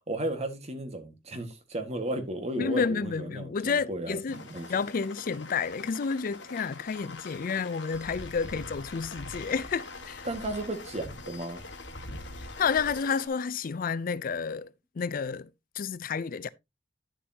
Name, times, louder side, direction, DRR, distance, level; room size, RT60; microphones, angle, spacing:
voice 1, 0.1-4.7 10.2-11.6, right 1 dB, 35° right, 1.7 m, -34 dB
voice 2, 2.6-4.4 4.7-10.3 12.6-14.7 15.0-15.5 15.8-16.5, left 5 dB, 45° left, 0.4 m, -30 dB
sound 1, 4.3-13.3, left 2 dB, 70° left, 1.9 m, -43 dB
10.5 x 7.4 x 2.8 m
head